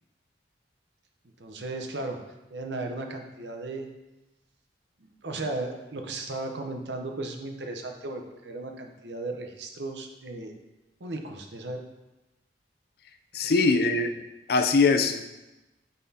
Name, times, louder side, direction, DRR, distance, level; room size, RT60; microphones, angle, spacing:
voice 1, 1.4-2.2 2.5-3.9 5.0-10.5 11.0-11.8 13.4-13.7, right 2 dB, 75° right, 4 dB, 0.8 m, -36 dB
voice 2, 13.3-14.1 14.5-15.2, left 4 dB, 60° left, 7 dB, 0.4 m, -22 dB
9.1 x 4.1 x 2.8 m, 1.0 s
head